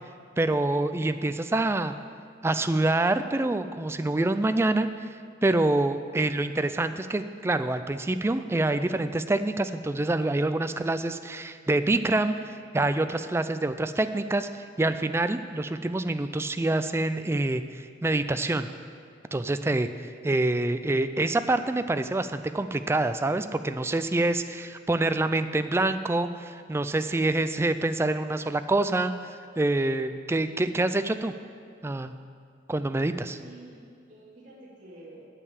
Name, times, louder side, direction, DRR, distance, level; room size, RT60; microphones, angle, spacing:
voice 1, 0.4-1.9 2.4-18.7 19.3-31.3 31.8-32.1 32.7-33.4, right 2 dB, 15° right, 10 dB, 0.3 m, -26 dB
voice 2, 33.4-35.3, right 2 dB, 45° right, -7 dB, 2.3 m, -48 dB
8.9 x 6.5 x 8.5 m, 2.1 s
head